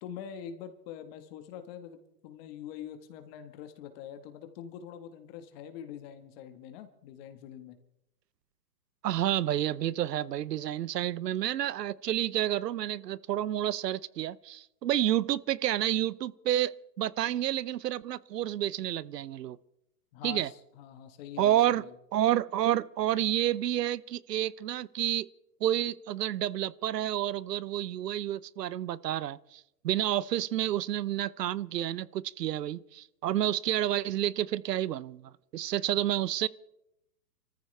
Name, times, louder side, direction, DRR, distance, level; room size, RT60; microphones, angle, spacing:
voice 1, 0.0-7.8 20.1-21.9, left 9 dB, 35° left, 1.6 m, -44 dB
voice 2, 9.0-19.6 20.2-20.5 21.4-21.8 22.1-25.3 25.6-36.5, right 12 dB, 75° right, 0.8 m, -29 dB
27.5 x 14.5 x 3.4 m
hypercardioid pair, 135°, 48 cm